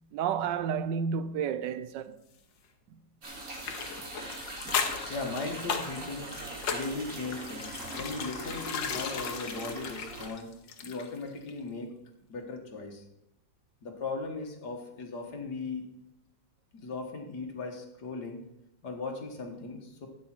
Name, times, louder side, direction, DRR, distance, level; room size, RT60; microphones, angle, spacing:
voice 1, 0.1-2.2 4.7-4.8, right 7 dB, 85° right, 1.3 m, -31 dB
sound 1, 3.2-10.3, right 2 dB, 50° right, 2.8 m, -42 dB
sound 2, 3.6-11.2 11.5-11.6, left 6 dB, 85° left, 1.8 m, -36 dB
voice 2, 5.1-10.5 10.8-11.9 12.3-13.1 13.8-15.9 16.7-18.4 18.8-20.1, left 3 dB, 65° left, 2.0 m, -38 dB
13.0 x 8.5 x 4.4 m
omnidirectional pair, 1.9 m